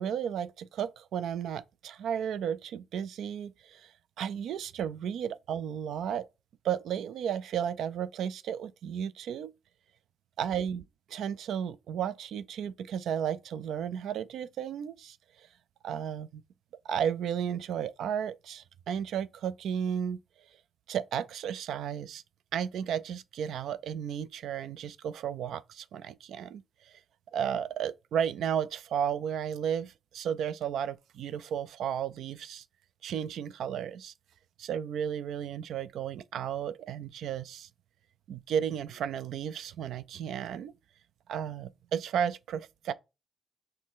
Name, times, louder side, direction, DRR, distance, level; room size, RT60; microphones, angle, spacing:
voice 1, 0.0-3.9 4.2-6.3 6.6-9.5 10.4-10.8 11.1-15.5 15.8-16.4 16.8-20.2 20.9-22.2 22.5-27.0 27.3-32.6 33.0-34.1 34.6-37.7 38.3-40.7 41.3-42.9, right 8 dB, 80° right, 0.4 m, -33 dB
6.3 x 2.2 x 3.6 m
cardioid pair, 145°, 0 cm